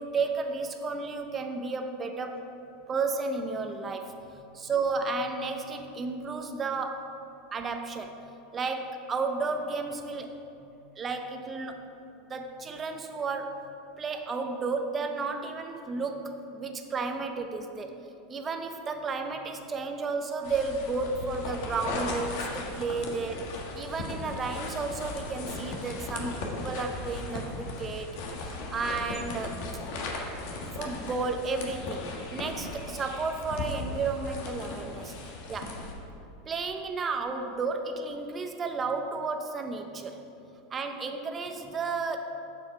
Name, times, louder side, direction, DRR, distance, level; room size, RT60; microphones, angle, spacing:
voice 1, 0.0-2.5 2.9-7.2 7.5-8.2 8.5-10.7 11.0-11.8 12.3-13.7 14.0-17.9 18.3-29.6 30.8-35.1 35.5-35.7 36.5-40.2 40.7-42.2, right 4 dB, 25° right, 6 dB, 0.7 m, -33 dB
sound 1, 20.4-35.9, left 2 dB, 65° left, 1.4 m, -37 dB
7.1 x 7.0 x 4.6 m, 2.7 s
supercardioid pair, 115°, 0 cm